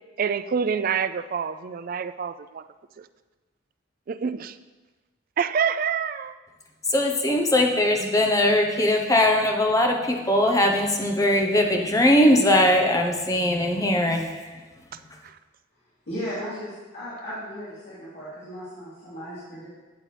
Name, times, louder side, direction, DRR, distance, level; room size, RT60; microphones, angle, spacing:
voice 1, 0.2-2.6 4.1-4.6 5.4-6.4, right 6 dB, 45° right, 12 dB, 0.4 m, -26 dB
voice 2, 6.9-14.2 14.5-14.6, left 1 dB, 15° left, 2 dB, 0.9 m, -20 dB
voice 3, 16.1-19.7, equal, 60° left, -11 dB, 2.9 m, -36 dB
12.0 x 7.5 x 3.3 m, 1.2 s
head